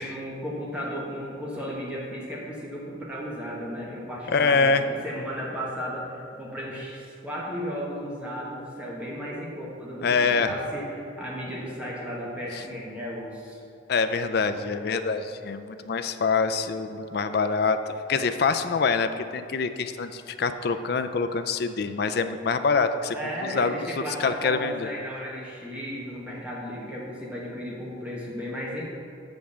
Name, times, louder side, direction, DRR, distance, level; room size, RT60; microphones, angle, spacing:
voice 1, 0.0-13.6 23.1-28.8, equal, 5° right, -5 dB, 1.2 m, -35 dB
voice 2, 4.3-4.8 10.0-10.5 12.5-12.6 13.9-23.2 23.4-23.9 24.2-24.9, left 4 dB, 55° left, 9 dB, 0.4 m, -25 dB
6.3 x 5.3 x 7.0 m, 2.8 s
head